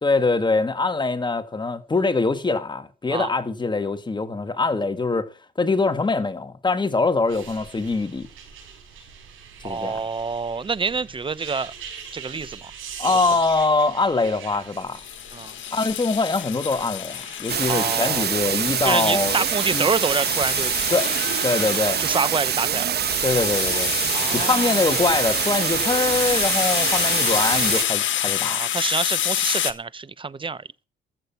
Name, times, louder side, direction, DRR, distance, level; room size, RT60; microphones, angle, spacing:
voice 1, 0.0-5.3 5.6-8.3 9.6-10.0 13.0-15.0 15.7-19.4 19.7-19.9 20.9-21.1 21.4-22.0 23.2-23.9 24.3-28.6, left 3 dB, 20° left, 1.7 m, -23 dB
sound 1, 7.3-20.7 21.6-22.1 22.7-22.8, right 7 dB, 85° right, 7.1 m, -42 dB
voice 2, 9.6-11.7 12.1-12.7 15.3-15.5 17.7-18.2 18.8-20.7 22.0-22.9 24.1-24.9 28.5-30.6, right 4 dB, 25° right, 0.8 m, -27 dB
sound 2, 14.9-29.7, left 11 dB, 70° left, 1.5 m, -28 dB
sound 3, 17.5-27.8, right 9 dB, 55° right, 1.1 m, -25 dB
14.5 x 8.8 x 5.8 m
cardioid pair, 90°, 20 cm